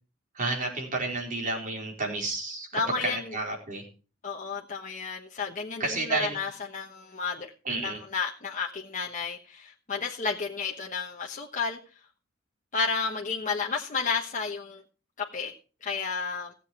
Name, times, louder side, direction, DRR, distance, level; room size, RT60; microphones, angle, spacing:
voice 1, 0.3-3.9 5.8-6.4 7.6-8.0, right 3 dB, 40° right, -2 dB, 4.6 m, -31 dB
voice 2, 2.7-3.3 4.2-7.5 7.8-11.8 12.7-14.8 15.2-15.5 15.8-16.5, left 5 dB, 40° left, 0 dB, 1.1 m, -32 dB
16.5 x 7.8 x 4.7 m, 0.36 s
head